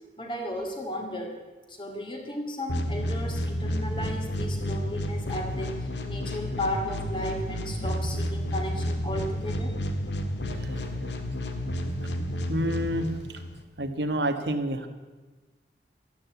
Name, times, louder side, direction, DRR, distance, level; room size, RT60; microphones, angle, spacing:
voice 1, 0.2-1.4 1.7-9.7, left 1 dB, 30° left, 3 dB, 2.6 m, -34 dB
sound 1, 2.7-13.6, equal, 90° left, 1.8 m, -31 dB
voice 2, 10.5-11.1 12.5-13.1 13.8-14.9, right 1 dB, 80° right, 7 dB, 1.6 m, -29 dB
13.0 x 13.0 x 8.4 m, 1.3 s
head